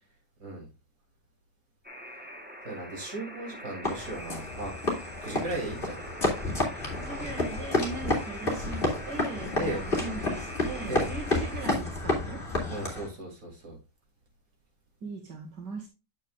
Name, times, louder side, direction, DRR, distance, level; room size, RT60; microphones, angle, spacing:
Alarm, 1.8-11.7, equal, 5° right, 1.0 m, -44 dB
voice 1, 2.6-6.0 9.6-9.9 10.9-11.1 12.7-13.8, right 2 dB, 50° right, 0 dB, 3.3 m, -36 dB
sound 1, 3.8-13.1, left 2 dB, 30° left, 2.6 m, -30 dB
voice 2, 7.0-12.4 15.0-15.9, right 4 dB, 80° right, 1 dB, 2.5 m, -39 dB
8.9 x 7.3 x 2.4 m, 0.28 s
omnidirectional pair, 1.8 m